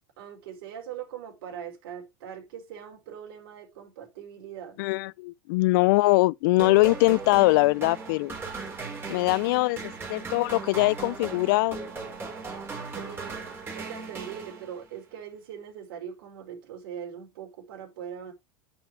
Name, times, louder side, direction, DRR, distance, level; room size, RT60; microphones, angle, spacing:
voice 1, 0.2-4.8 12.9-13.5 13.7-18.3, right 8 dB, 70° right, 4.9 m, -41 dB
voice 2, 4.8-8.3 9.1-11.8, left 22 dB, 60° left, 0.4 m, -22 dB
sound 1, 6.6-15.0, right 4 dB, 20° right, 4.1 m, -38 dB
9.8 x 6.2 x 3.2 m
supercardioid pair, 135°, 13 cm